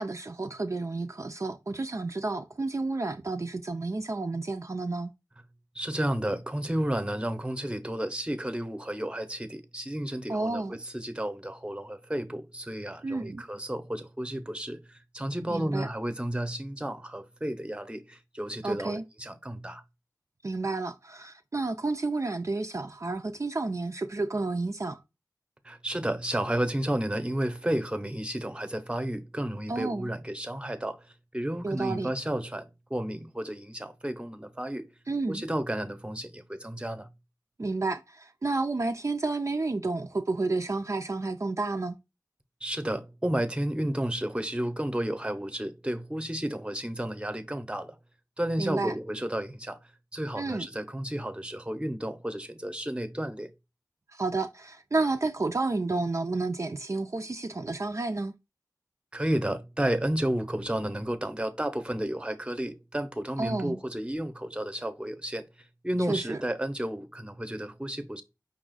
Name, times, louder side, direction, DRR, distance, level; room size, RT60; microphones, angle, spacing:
voice 1, 0.0-5.1 10.3-10.8 13.0-13.4 15.5-15.9 18.6-19.0 20.4-25.0 29.7-30.1 31.6-32.1 35.1-35.4 37.6-42.0 48.6-48.9 50.4-50.7 54.1-58.3 63.4-63.8 66.1-66.4, right 3 dB, 45° right, 0.4 m, -31 dB
voice 2, 5.7-19.8 25.6-34.9 35.3-37.1 42.6-48.0 48.4-49.8 50.1-53.5 59.1-65.5 65.8-68.2, right 1 dB, 15° right, 0.7 m, -32 dB
5.4 x 2.4 x 3.8 m
wide cardioid pair, 50°, 7 cm